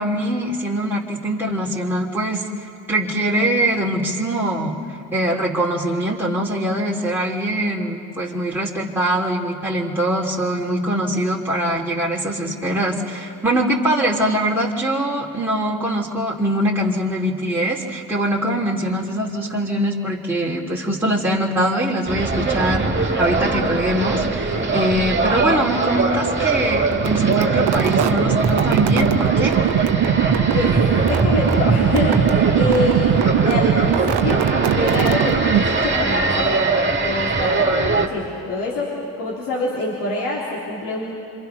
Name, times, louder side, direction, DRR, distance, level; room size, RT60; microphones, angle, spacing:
voice 1, 0.0-2.4 2.9-4.8 5.1-29.6, right 1 dB, 5° right, -5 dB, 2.8 m, -22 dB
sound 1, 22.1-38.1, right 3 dB, 25° right, 2.4 m, -21 dB
sound 2, 26.9-35.9, right 12 dB, 75° right, 0.8 m, -21 dB
voice 2, 31.1-34.5 34.7-41.1, left 2 dB, 75° left, -5 dB, 3.8 m, -25 dB
26.5 x 25.0 x 5.8 m, 2.6 s
supercardioid pair, 60°, 42 cm